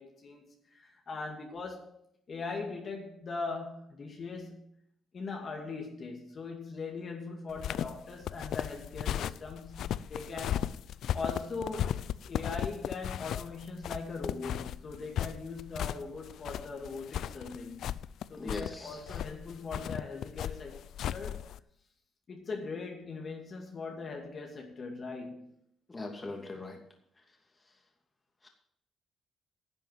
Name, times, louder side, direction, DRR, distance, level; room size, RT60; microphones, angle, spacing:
voice 1, 0.0-1.9 2.3-4.6 5.1-9.8 10.1-10.7 11.1-12.0 12.3-17.9 18.3-20.8 21.1-21.5 22.3-25.5, left 4 dB, 45° left, 2.5 m, -40 dB
sound 1, 7.5-21.6, left 10 dB, 75° left, 0.4 m, -36 dB
voice 2, 18.4-19.0 25.9-26.8 27.6-27.8 28.4-28.5, left 2 dB, 20° left, 2.7 m, -40 dB
11.0 x 7.5 x 7.6 m
cardioid pair, 90°, 0 cm